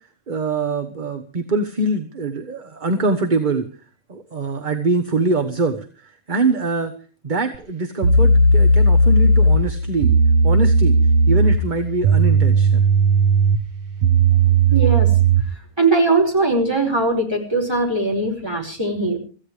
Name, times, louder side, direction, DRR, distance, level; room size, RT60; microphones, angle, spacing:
voice 1, 0.3-3.7 4.1-6.9 7.2-10.1 10.4-11.0 11.3-12.8, right 3 dB, 35° right, 8 dB, 1.3 m, -23 dB
sound 1, 7.5-7.6 8.0-15.5, right 3 dB, 60° right, 1.4 m, -16 dB
voice 2, 14.7-15.1 15.8-19.2, right 3 dB, 15° right, 0 dB, 5.4 m, -20 dB
25.5 x 15.5 x 3.3 m, 0.38 s
omnidirectional pair, 1.5 m